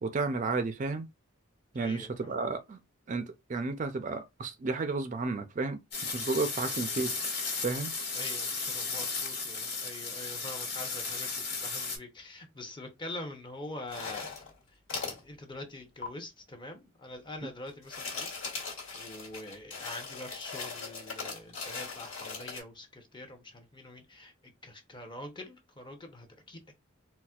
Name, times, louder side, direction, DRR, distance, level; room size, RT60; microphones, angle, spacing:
voice 1, 0.0-1.1 1.7-2.8 3.1-7.1 7.6-7.9, right 3 dB, 40° right, 0.4 m, -32 dB
voice 2, 1.7-2.5 6.6-6.8 8.1-14.3 15.0-18.3 18.9-26.8, left 1 dB, 25° left, 0.7 m, -45 dB
sound 1, 5.9-12.0, left 4 dB, 55° left, 1.4 m, -35 dB
sound 2, 13.9-14.5 14.9-15.2 16.0-16.1 17.7-22.6, left 4 dB, 75° left, 1.5 m, -39 dB
4.1 x 2.1 x 2.3 m
head